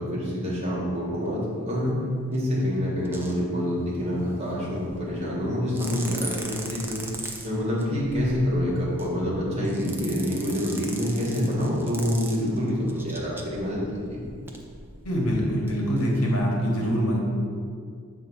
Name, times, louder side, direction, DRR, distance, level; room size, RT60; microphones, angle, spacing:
voice 1, 0.0-1.9 2.3-7.0 7.4-13.8 14.1-14.2, equal, 25° right, -5 dB, 1.3 m, -27 dB
sound 1, 1.3-1.4 2.3-2.6 3.0-3.4 3.7-5.3 5.7-15.3 15.7-15.8 16.0-16.5, right 2 dB, 10° right, 0.4 m, -40 dB
voice 2, 15.0-17.2, equal, 75° left, -2 dB, 1.2 m, -24 dB
7.2 x 2.7 x 5.4 m, 2.2 s
head